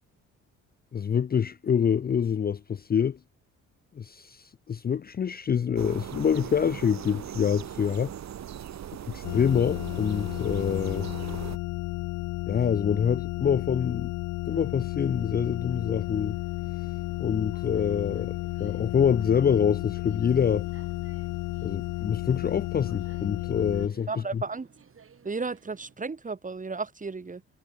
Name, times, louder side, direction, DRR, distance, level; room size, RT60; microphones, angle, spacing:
voice 1, 0.9-3.2 4.0-8.1 9.1-11.1 12.5-14.1 14.5-16.4 17.2-20.7 21.6-24.1 24.3-24.4, left 7 dB, 30° left, 0.6 m, -26 dB
sound 1, 5.8-11.6, right 10 dB, 65° right, 3.5 m, -39 dB
sound 2, 9.2-23.9, left 20 dB, 85° left, 0.5 m, -33 dB
sound 3, 14.5-26.0, right 6 dB, 45° right, 7.3 m, -56 dB
voice 2, 24.1-24.7 25.2-27.4, right 4 dB, 25° right, 3.3 m, -33 dB
cardioid pair, 90°, 30 cm